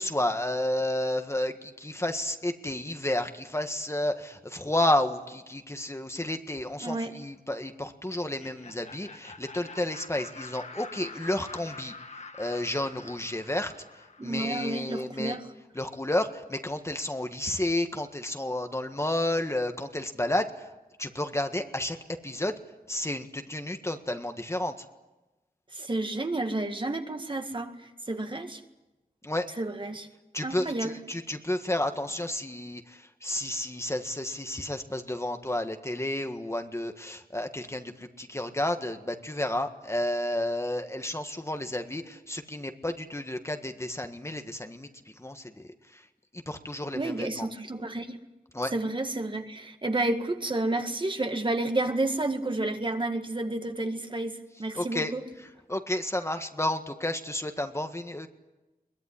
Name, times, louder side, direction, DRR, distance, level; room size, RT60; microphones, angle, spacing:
voice 1, 0.0-11.9 12.4-13.7 14.2-15.4 15.7-20.7 21.0-22.0 22.2-22.5 22.9-24.8 29.2-29.5 30.3-44.9 45.2-46.0 46.3-47.5 48.5-48.7 54.7-55.1 55.7-58.3, left 1 dB, 20° left, 6 dB, 1.6 m, -31 dB
voice 2, 6.8-7.2 14.2-15.5 25.7-28.6 29.6-30.1 30.4-31.0 46.9-48.2 48.7-55.2, right 2 dB, 35° right, 6 dB, 2.0 m, -31 dB
Laughter, 8.2-15.0, left 3 dB, 50° left, 1.5 m, -46 dB
22.5 x 20.5 x 10.0 m, 1.0 s
wide cardioid pair, 95°, 15 cm